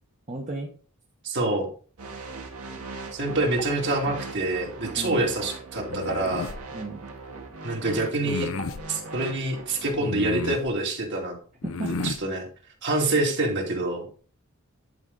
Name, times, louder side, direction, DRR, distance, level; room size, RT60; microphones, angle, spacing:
voice 1, 0.3-0.7 5.0-5.2 6.7-7.1 11.6-12.3, right 2 dB, 30° right, -1 dB, 1.1 m, -35 dB
voice 2, 1.2-1.7 3.1-6.6 7.6-8.5 8.9-11.3 12.0-12.4 12.8-14.1, right 2 dB, 50° right, 0 dB, 2.6 m, -26 dB
sound 1, 2.0-9.9, right 2 dB, 75° right, 2.0 m, -38 dB
sound 2, 5.9-6.6 8.2-8.8 10.0-10.7 11.6-12.2, left 4 dB, 60° left, 0.5 m, -32 dB
10.5 x 4.9 x 4.0 m, 0.40 s
head